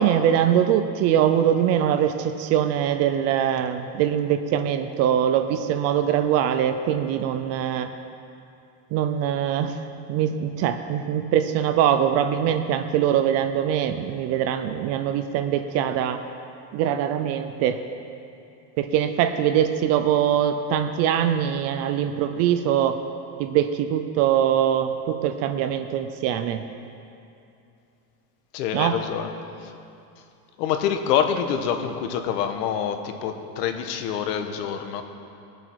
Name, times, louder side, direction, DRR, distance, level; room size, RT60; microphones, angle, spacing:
voice 1, 0.0-7.9 8.9-9.8 10.1-16.2 16.7-17.8 18.8-23.0 23.4-26.6 28.7-29.0, right 9 dB, 35° right, 8 dB, 0.4 m, -22 dB
voice 2, 28.5-29.3 29.6-29.7 30.6-35.0, left 8 dB, 75° left, 7 dB, 1.4 m, -26 dB
21.5 x 7.8 x 4.6 m, 2.6 s
supercardioid pair, 150°, 48 cm